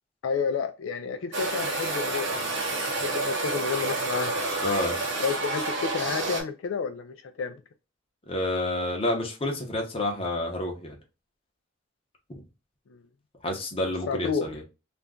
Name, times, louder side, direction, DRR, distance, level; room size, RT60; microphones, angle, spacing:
voice 1, 0.2-4.3 5.2-7.6 12.9-13.0 14.1-14.5, left 5 dB, 80° left, 0.4 m, -31 dB
sound 1, 1.3-6.4, right 2 dB, 65° right, 1.1 m, -29 dB
voice 2, 4.6-5.0 8.3-11.0 12.3-12.4 13.4-14.6, left 1 dB, 30° left, 0.8 m, -29 dB
2.5 x 2.2 x 3.5 m
head